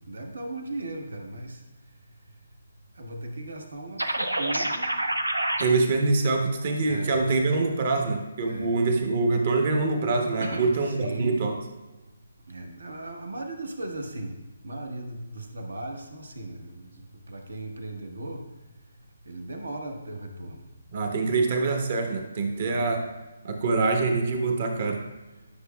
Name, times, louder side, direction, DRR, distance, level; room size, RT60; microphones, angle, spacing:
voice 1, 0.0-1.6 3.0-5.0 6.9-7.1 8.4-8.8 10.4-10.7 11.0-11.4 12.5-14.3 14.6-18.4 19.2-20.7 22.5-22.9, right 2 dB, 70° right, 3 dB, 1.1 m, -37 dB
sound 1, 4.0-5.6, right 1 dB, 85° right, 0.7 m, -27 dB
voice 2, 5.6-11.6 20.9-23.0 23.4-25.0, right 3 dB, 45° right, 3 dB, 1.0 m, -25 dB
10.0 x 5.8 x 2.3 m, 1.1 s
figure-of-eight pair, 140°, 0 cm